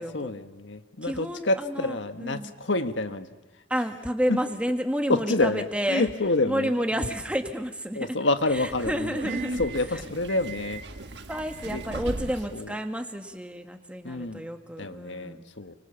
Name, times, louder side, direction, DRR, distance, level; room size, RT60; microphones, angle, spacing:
voice 1, 0.0-3.3 4.3-4.4 5.1-7.1 7.9-9.3 9.6-10.8 11.7-11.8 12.5-12.7 14.0-14.4 14.8-15.7, left 2 dB, 75° left, 9 dB, 1.5 m, -28 dB
voice 2, 1.0-2.0 2.2-2.5 3.7-6.1 6.5-8.1 8.5-9.6 9.9-10.0 11.3-15.5, equal, 5° right, 5 dB, 1.8 m, -30 dB
Subway metro underground, 8.4-12.7, right 2 dB, 65° right, 1.4 m, -37 dB
29.5 x 25.0 x 7.1 m, 1.2 s
head